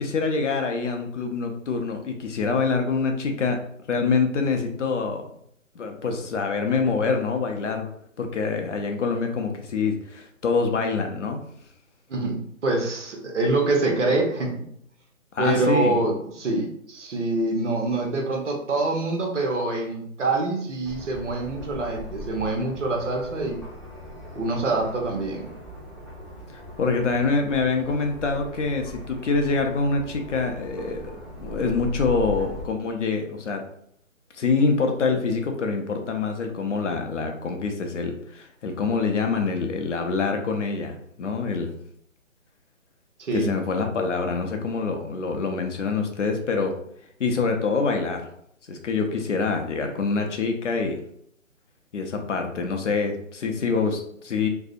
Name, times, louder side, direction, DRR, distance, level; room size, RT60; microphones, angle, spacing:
voice 1, 0.0-3.6 3.9-5.3 5.8-7.9 8.2-11.4 15.3-16.0 26.5-31.1 31.4-33.6 34.4-41.7 43.3-46.7 47.2-48.3 48.7-51.0 51.9-54.5, left 4 dB, 65° left, 4 dB, 0.5 m, -25 dB
voice 2, 12.1-14.6 15.4-23.6 24.4-25.5 43.2-43.5, right 2 dB, 60° right, 1 dB, 0.8 m, -25 dB
sound 1, 20.8-32.6, equal, ahead, 0.3 m, -40 dB
2.6 x 2.0 x 2.4 m, 0.70 s
hypercardioid pair, 165°, 40 cm